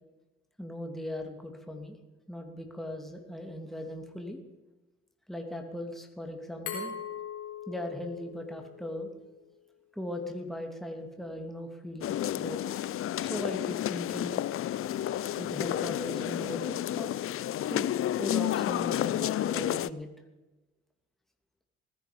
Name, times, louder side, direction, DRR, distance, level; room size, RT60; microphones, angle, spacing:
voice 1, 0.6-2.0 2.3-4.4 5.3-6.9 7.7-9.1 9.9-12.6 13.2-14.4 15.3-17.1 17.6-20.1, left 1 dB, ahead, 3 dB, 2.6 m, -38 dB
Glass, 6.7-9.4, left 7 dB, 75° left, 4.0 m, -41 dB
sound 1, 12.0-19.9, left 12 dB, 45° left, 0.5 m, -31 dB
20.0 x 10.5 x 5.2 m, 1.1 s
hypercardioid pair, 55°, 30 cm